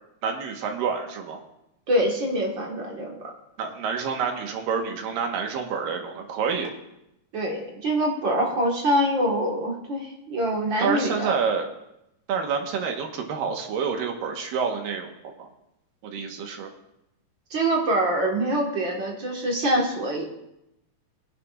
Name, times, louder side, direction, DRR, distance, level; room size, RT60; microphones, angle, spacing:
voice 1, 0.2-1.4 3.6-6.7 10.8-11.7 12.3-15.5 16.0-16.7, right 6 dB, 80° right, 3 dB, 3.0 m, -28 dB
voice 2, 1.9-3.2 7.3-11.3 17.5-20.2, right 1 dB, 45° right, -1 dB, 1.9 m, -25 dB
21.5 x 11.0 x 2.5 m, 0.84 s
omnidirectional pair, 3.9 m